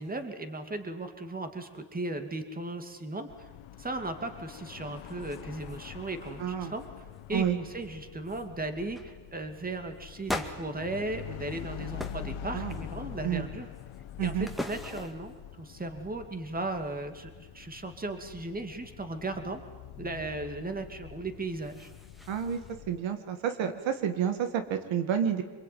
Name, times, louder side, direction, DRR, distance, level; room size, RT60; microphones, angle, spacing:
voice 1, 0.0-3.5 3.8-6.8 7.3-13.7 14.2-19.6 20.0-21.9, right 2 dB, 20° right, 7 dB, 2.5 m, -36 dB
sound 1, 3.3-23.0, left 10 dB, 85° left, 1.4 m, -45 dB
sound 2, 4.5-4.6 5.0-5.8 6.0-6.4 6.8-7.2 7.8-7.9 8.3-8.5 8.9-9.1 10.2-11.6 12.0-12.3 12.7-13.2 13.7-15.4 21.4-22.7, left 1 dB, ahead, 2.0 m, -41 dB
voice 2, 6.4-6.7 7.3-7.6 12.5-12.8 13.2-13.5 14.2-14.5 22.3-22.6 22.9-25.4, right 8 dB, 75° right, 9 dB, 2.2 m, -29 dB
26.5 x 22.0 x 9.4 m, 1.3 s
cardioid pair, 115°, 47 cm